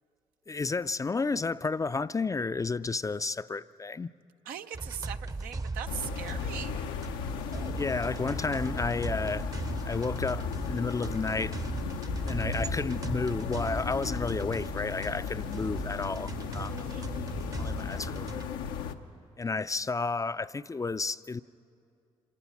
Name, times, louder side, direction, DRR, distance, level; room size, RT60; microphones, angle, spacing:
voice 1, 0.5-4.1 7.8-9.5 9.8-11.6 12.3-16.8 17.6-18.4 19.4-21.4, left 4 dB, 25° left, 0.4 m, -32 dB
voice 2, 4.5-6.9 16.8-17.1, right 9 dB, 80° right, 0.7 m, -40 dB
sound 1, 4.7-18.5, right 3 dB, 25° right, 0.7 m, -38 dB
sound 2, 5.9-19.0, left 7 dB, 90° left, 0.7 m, -36 dB
26.5 x 18.5 x 6.0 m
supercardioid pair, 55°, 15 cm